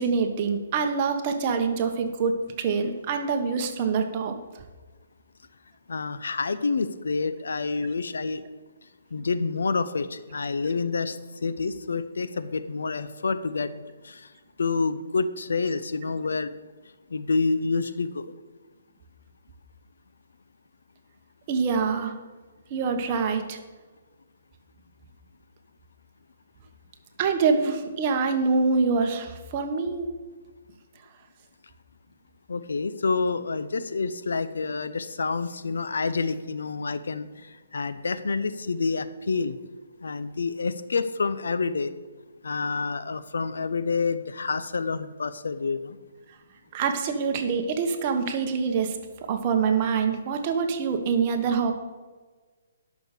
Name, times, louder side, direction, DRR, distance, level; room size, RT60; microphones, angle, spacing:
voice 1, 0.0-4.3 21.5-22.1 22.7-23.6 27.2-30.1 46.7-51.7, right 5 dB, 30° right, 5 dB, 1.2 m, -25 dB
voice 2, 5.9-8.4 9.1-14.3 14.6-16.5 17.1-18.3 32.5-39.6 40.0-41.9 42.4-46.0, left 4 dB, 85° left, 12 dB, 0.7 m, -28 dB
11.0 x 6.4 x 6.7 m, 1.3 s
hypercardioid pair, 160°, 0 cm